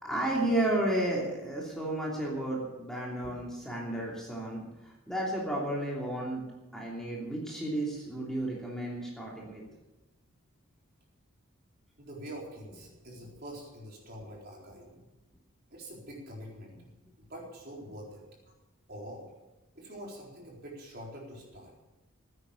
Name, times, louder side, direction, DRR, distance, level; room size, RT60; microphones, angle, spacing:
voice 1, 0.0-6.4 6.7-9.6, right 1 dB, ahead, -4 dB, 2.9 m, -32 dB
voice 2, 12.0-14.9 15.7-16.7 17.2-18.2 18.9-19.3 19.7-21.7, equal, 45° right, -2 dB, 4.1 m, -45 dB
15.5 x 9.9 x 7.1 m, 1.1 s
head